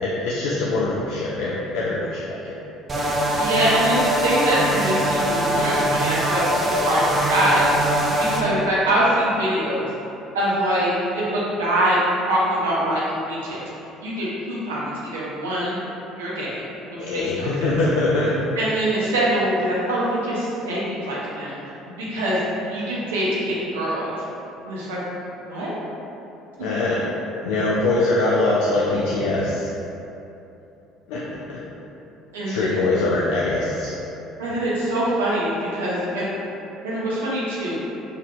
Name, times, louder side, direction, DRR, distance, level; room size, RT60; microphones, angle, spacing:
voice 1, 0.0-2.5 17.0-18.3 26.6-27.0 27.4-29.7 31.1-31.6 32.4-33.9, left 2 dB, 65° left, -6 dB, 0.4 m, -23 dB
sound 1, 2.9-8.4, right 1 dB, 35° right, 0.5 m, -22 dB
voice 2, 3.4-9.9 10.3-13.6 14.0-15.8 16.2-16.6 17.0-17.7 18.6-21.5 22.0-22.4 22.7-24.2 24.6-25.0 25.4-25.7 32.3-32.8 34.4-36.4 36.8-37.8, right 1 dB, 80° right, -7 dB, 0.8 m, -24 dB
4.0 x 2.8 x 2.4 m, 2.9 s
hypercardioid pair, 60°, 0 cm